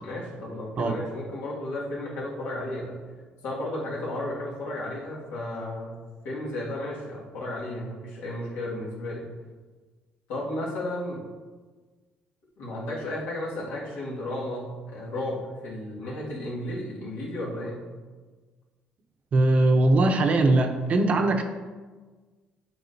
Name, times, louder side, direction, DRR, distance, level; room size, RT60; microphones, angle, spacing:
voice 1, 0.0-3.0 3.4-6.0 6.2-9.2 10.3-11.2 12.6-17.9, left 1 dB, 85° left, -5 dB, 1.9 m, -33 dB
voice 2, 19.3-21.4, right 2 dB, 40° right, 5 dB, 0.6 m, -21 dB
7.9 x 4.7 x 2.7 m, 1.4 s
cardioid pair, 120°, 3 cm